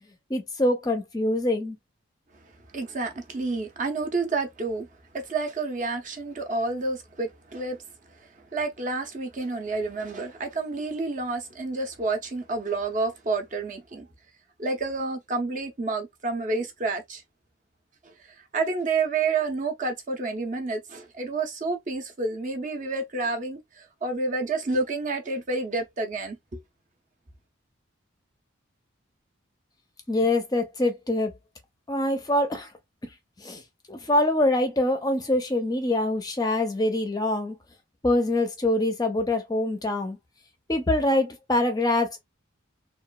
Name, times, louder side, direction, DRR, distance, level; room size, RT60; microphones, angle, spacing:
voice 1, 0.3-1.8 30.1-31.3 31.9-32.7 33.4-33.6 33.9-37.6 38.0-40.2 40.7-42.2, left 1 dB, 20° left, 0.4 m, -24 dB
voice 2, 2.4-4.9 5.1-7.8 8.1-14.1 14.6-17.2 18.0-26.6, right 3 dB, 35° right, 0.5 m, -29 dB
2.9 x 2.3 x 2.2 m
head